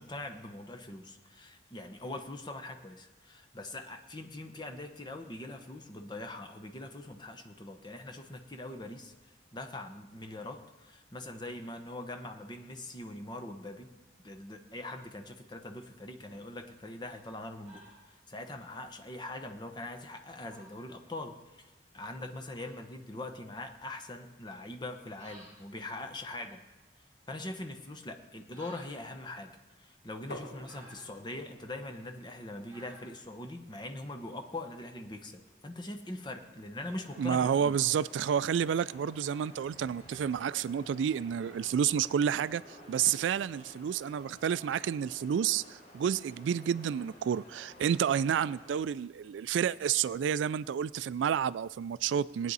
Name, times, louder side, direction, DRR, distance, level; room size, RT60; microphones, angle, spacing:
voice 1, 0.0-9.1 9.5-13.9 14.2-17.8 18.1-26.6 27.3-29.5 29.8-37.8, left 2 dB, 25° left, 0.9 m, -42 dB
sound 1, 15.9-34.6, right 1 dB, 20° right, 4.4 m, -61 dB
sound 2, 30.3-35.9, left 1 dB, 60° left, 1.8 m, -52 dB
sound 3, 36.8-48.8, left 1 dB, 40° left, 3.8 m, -53 dB
voice 2, 37.2-42.6 42.9-52.5, right 8 dB, 80° right, 0.3 m, -30 dB
19.5 x 9.4 x 4.1 m
head